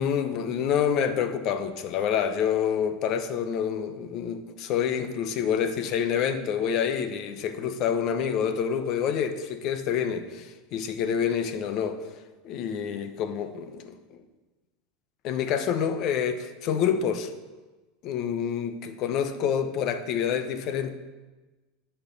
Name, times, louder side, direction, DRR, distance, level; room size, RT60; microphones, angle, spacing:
voice 1, 0.0-12.0 12.4-14.2 15.2-17.3 18.0-20.9, left 8 dB, 50° left, 0.9 m, -27 dB
11.0 x 4.5 x 6.8 m
supercardioid pair, 120°, 0 cm